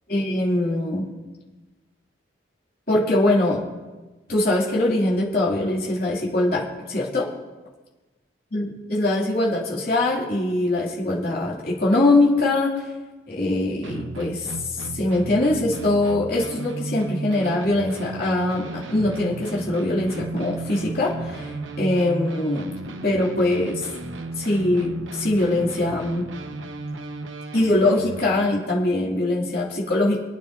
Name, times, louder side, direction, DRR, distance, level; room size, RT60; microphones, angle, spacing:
voice 1, 0.1-1.1 2.9-3.6 4.3-7.3 8.5-12.9 13.3-22.7 23.0-23.9 24.4-26.2 27.5-30.2, left 2 dB, 50° left, -6 dB, 2.8 m, -22 dB
sound 1, 13.8-28.5, right 2 dB, 85° right, 0.8 m, -34 dB
26.5 x 9.3 x 2.8 m, 1.2 s
head